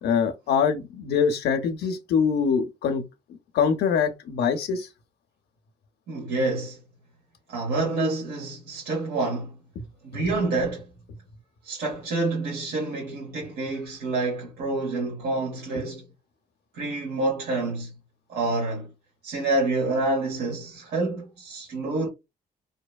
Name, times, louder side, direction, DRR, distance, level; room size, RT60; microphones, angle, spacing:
voice 1, 0.0-3.0 3.5-4.9 9.8-9.9, left 6 dB, 80° left, 0.5 m, -24 dB
voice 2, 6.1-6.8 7.5-9.5 10.0-10.9 11.6-16.0 16.7-17.9 18.3-18.9 19.2-22.1, right 2 dB, 75° right, 0.9 m, -27 dB
2.7 x 2.1 x 2.3 m
cardioid pair, 70°, 17 cm